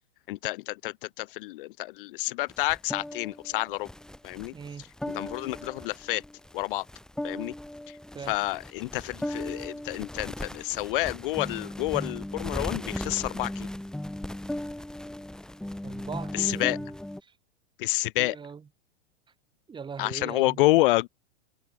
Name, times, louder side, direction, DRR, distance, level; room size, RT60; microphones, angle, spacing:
voice 1, 0.3-3.9 4.2-4.5 5.1-6.2 6.5-6.8 7.2-7.5 7.9-8.0 8.3-13.7 16.3-16.8 17.8-18.4 20.0-21.1, left 19 dB, 50° left, 0.9 m, -28 dB
sound 1, 2.5-17.2, left 1 dB, ahead, 1.7 m, -37 dB
voice 2, 4.5-4.8 8.1-8.3 15.8-16.9 17.2-17.3 18.2-18.7 19.7-20.8, right 6 dB, 15° right, 5.0 m, -40 dB
supercardioid pair, 150°, 34 cm